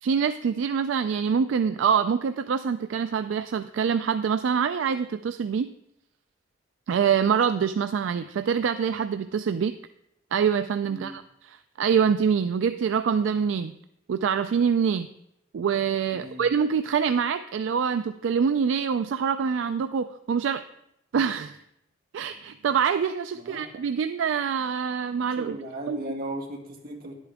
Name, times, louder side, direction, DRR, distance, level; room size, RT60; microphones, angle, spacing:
voice 1, 0.0-5.7 6.9-9.7 10.3-13.7 14.1-15.1 15.5-20.6 21.1-21.6 22.1-25.5 25.9-26.0, right 7 dB, 75° right, 10 dB, 0.3 m, -25 dB
voice 2, 10.9-11.2 16.1-16.5 23.3-23.7 25.4-27.1, right 1 dB, 50° right, 0 dB, 1.7 m, -37 dB
10.5 x 8.3 x 3.5 m, 0.80 s
head